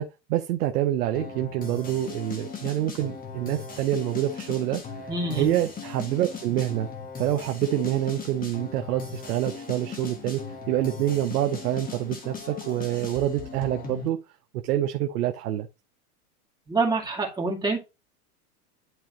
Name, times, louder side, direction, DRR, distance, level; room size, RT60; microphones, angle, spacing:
voice 1, 0.0-4.8 5.4-6.9 7.2-14.2 14.5-15.7, right 13 dB, 70° right, 1.0 m, -27 dB
sound 1, 1.2-14.1, left 5 dB, 20° left, 1.6 m, -38 dB
voice 2, 5.1-5.5 16.7-17.8, right 3 dB, 10° right, 2.5 m, -26 dB
11.0 x 3.8 x 3.1 m
supercardioid pair, 130°, 47 cm